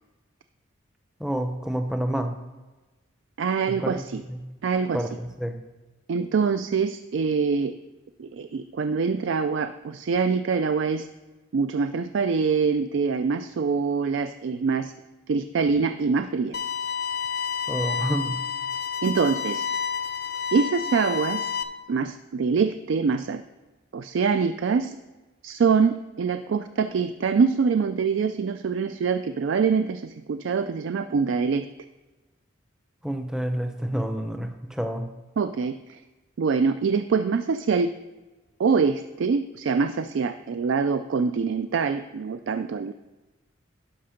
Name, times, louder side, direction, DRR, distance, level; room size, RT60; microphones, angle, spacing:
voice 1, 1.2-2.3 3.7-4.0 4.3-4.4 4.9-5.6 17.7-18.4 33.0-35.1, right 1 dB, 5° right, 6 dB, 0.6 m, -28 dB
voice 2, 3.4-4.2 4.6-5.0 6.1-7.7 8.2-11.1 11.5-14.9 15.3-16.6 19.0-19.6 20.5-21.5 21.9-23.4 23.9-25.0 25.4-31.7 35.4-36.0 36.4-37.9 38.6-42.9, right 5 dB, 65° right, 10 dB, 0.3 m, -24 dB
sound 1, 16.5-21.6, left 6 dB, 50° left, 0.5 m, -29 dB
11.5 x 5.3 x 5.1 m, 1.2 s
head